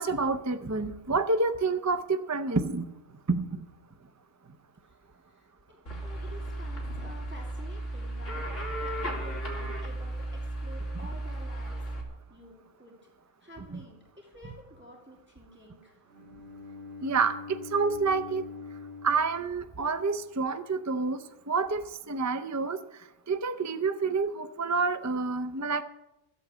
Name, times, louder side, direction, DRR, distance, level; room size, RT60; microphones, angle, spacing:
voice 1, 0.0-2.9 3.3-3.6 17.0-18.4 19.0-21.2 21.5-22.8 23.3-25.8, right 4 dB, 25° right, 10 dB, 0.4 m, -28 dB
voice 2, 4.8-8.5 8.8-11.8 12.3-13.0 13.4-16.0, equal, 10° right, -2 dB, 2.4 m, -50 dB
sound 1, 5.9-12.0, right 1 dB, 70° left, 3.4 m, -35 dB
Bowed string instrument, 16.1-20.2, left 4 dB, 50° right, 2.6 m, -44 dB
14.5 x 8.5 x 8.2 m, 0.92 s
omnidirectional pair, 1.3 m